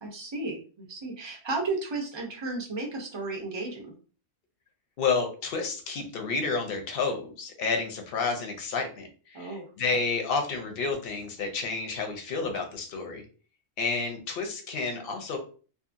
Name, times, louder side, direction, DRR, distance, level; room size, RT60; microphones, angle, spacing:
voice 1, 0.0-3.9 9.3-9.7, right 3 dB, 40° right, 1 dB, 0.4 m, -34 dB
voice 2, 5.0-13.2 13.8-15.4, left 4 dB, 55° left, 4 dB, 0.7 m, -30 dB
2.7 x 2.4 x 2.5 m, 0.38 s
omnidirectional pair, 1.3 m